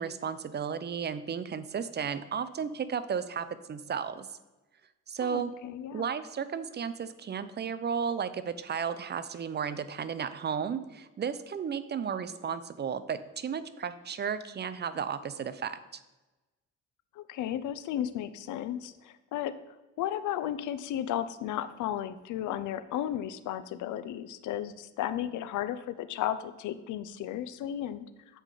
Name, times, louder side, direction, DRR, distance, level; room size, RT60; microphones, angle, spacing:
voice 1, 0.0-4.3 5.1-5.5 5.9-15.8, right 7 dB, 35° right, 13 dB, 0.5 m, -34 dB
voice 2, 5.2-6.1 17.1-28.1, left 11 dB, 80° left, 13 dB, 0.5 m, -34 dB
7.6 x 4.8 x 3.8 m, 1.1 s
cardioid pair, 90°, 30 cm